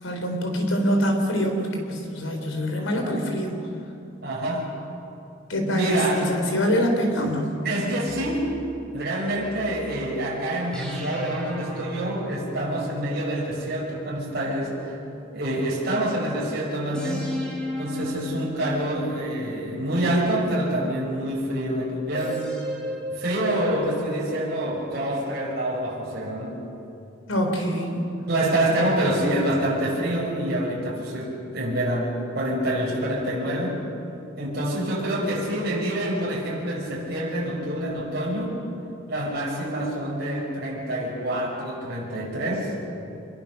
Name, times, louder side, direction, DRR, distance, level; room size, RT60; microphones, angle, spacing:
voice 1, 0.0-3.6 5.5-7.6 27.3-28.0, equal, 90° left, 3 dB, 4.1 m, -24 dB
voice 2, 4.2-4.7 5.7-6.2 7.6-8.6 8.9-15.0 15.3-17.3 17.8-22.6 23.1-26.6 28.3-33.8 34.4-38.6 39.1-42.8, right 1 dB, 55° right, -5 dB, 6.1 m, -26 dB
sound 1, 8.1-10.1 10.7-15.9 16.9-21.2 22.1-23.7, equal, 5° left, 5.3 m, -36 dB
26.5 x 21.5 x 6.6 m, 2.8 s
head